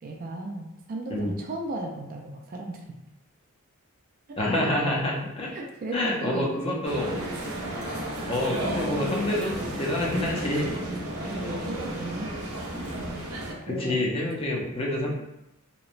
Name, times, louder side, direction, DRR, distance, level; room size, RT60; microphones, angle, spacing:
voice 1, 0.0-2.8 4.6-4.7 5.5-6.8 10.5-10.8 11.2-12.3 12.8-13.1 13.7-14.0, right 2 dB, 40° right, 2 dB, 0.3 m, -36 dB
voice 2, 4.4-5.5 5.9-7.2 8.3-10.7 13.7-15.1, left 1 dB, 25° left, -3 dB, 0.4 m, -27 dB
sound 1, 6.8-13.5, right 1 dB, 85° right, 0.6 m, -32 dB
2.9 x 2.0 x 2.4 m, 0.88 s
head